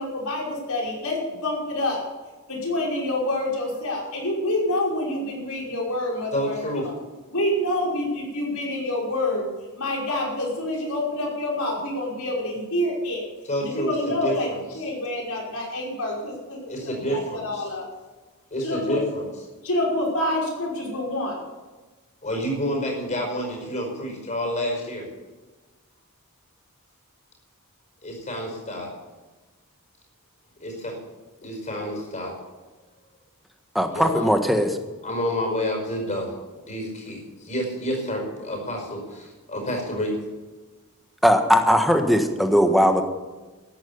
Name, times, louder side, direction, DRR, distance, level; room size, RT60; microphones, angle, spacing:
voice 1, 0.0-2.0 2.5-6.6 6.8-6.9 7.3-9.5 9.8-13.2 13.6-14.5 14.7-17.9 18.6-19.0 19.6-21.4, left 1 dB, 80° left, -2 dB, 5.5 m, -27 dB
voice 2, 6.3-6.9 13.5-14.6 16.7-17.6 18.5-19.3 22.2-25.1 28.0-28.9 30.6-31.0 31.4-32.3 33.9-34.3 35.0-36.3 36.6-40.1, equal, 35° left, 1 dB, 5.1 m, -29 dB
voice 3, 33.7-34.8 41.2-43.0, equal, ahead, 5 dB, 1.4 m, -19 dB
14.0 x 11.0 x 7.1 m, 1.2 s
head